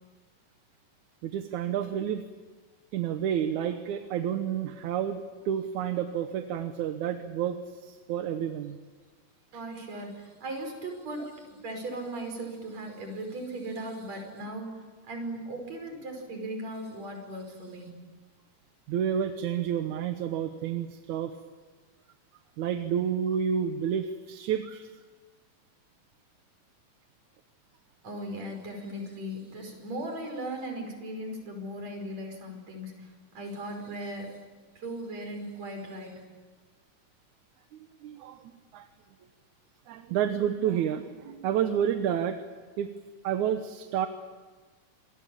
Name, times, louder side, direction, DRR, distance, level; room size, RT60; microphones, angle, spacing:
voice 1, 1.2-2.2 2.9-5.2 5.5-8.8 18.9-21.3 22.6-24.9 38.0-38.9 39.9-42.4 42.8-42.9 43.2-44.1, right 9 dB, 70° right, 7 dB, 2.3 m, -30 dB
voice 2, 9.5-17.9 28.0-34.4 34.8-36.2, right 1 dB, 55° right, 4 dB, 6.4 m, -38 dB
27.5 x 22.0 x 8.8 m, 1.4 s
omnidirectional pair, 3.8 m